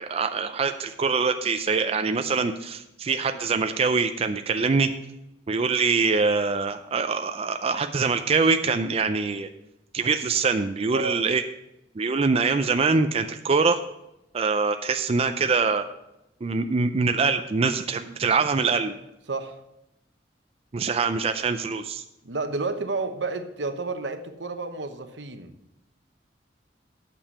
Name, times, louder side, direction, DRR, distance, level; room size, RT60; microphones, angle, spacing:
voice 1, 0.0-4.9 5.5-9.5 9.9-11.4 12.0-13.8 14.3-15.9 16.4-18.9 20.7-22.0, right 4 dB, 35° right, 7 dB, 0.4 m, -24 dB
voice 2, 19.3-19.6 22.2-25.5, right 3 dB, 80° right, 8 dB, 0.9 m, -31 dB
8.7 x 6.9 x 5.5 m, 0.89 s
head